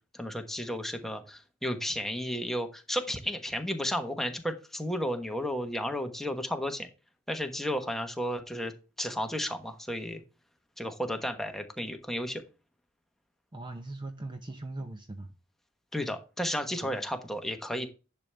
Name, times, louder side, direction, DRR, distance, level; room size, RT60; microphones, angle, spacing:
voice 1, 0.1-6.9 7.3-8.7 9.0-10.2 10.8-12.4 15.9-17.9, equal, ahead, 1.1 m, -33 dB
voice 2, 13.5-15.3 16.8-17.0, right 2 dB, 20° right, 0.7 m, -40 dB
10.5 x 6.7 x 3.4 m
head